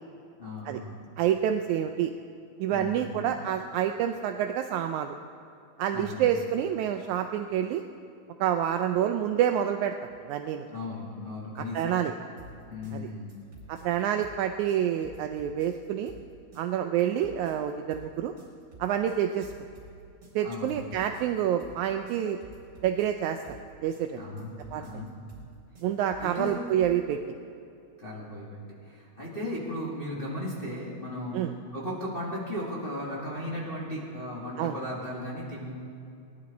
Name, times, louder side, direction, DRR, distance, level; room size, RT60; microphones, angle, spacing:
voice 1, 0.4-1.0 2.7-3.3 5.9-6.4 10.7-11.9 12.7-13.3 20.4-20.8 24.1-25.1 26.2-26.7 28.0-35.7, left 1 dB, 20° left, -6 dB, 1.6 m, -36 dB
voice 2, 1.2-2.1 2.6-5.2 5.8-7.8 8.4-10.6 11.7-12.1 12.9-13.1 13.7-16.1 16.6-18.3 18.8-19.5 20.3-22.4 22.8-23.4 23.8-24.2 24.7-25.0 25.8-27.2 31.3-31.5 34.6-34.8, right 10 dB, 80° right, 6 dB, 1.7 m, -28 dB
sound 1, 12.4-27.1, right 1 dB, 30° right, 4.1 m, -50 dB
19.0 x 11.0 x 4.1 m, 2.6 s
omnidirectional pair, 3.7 m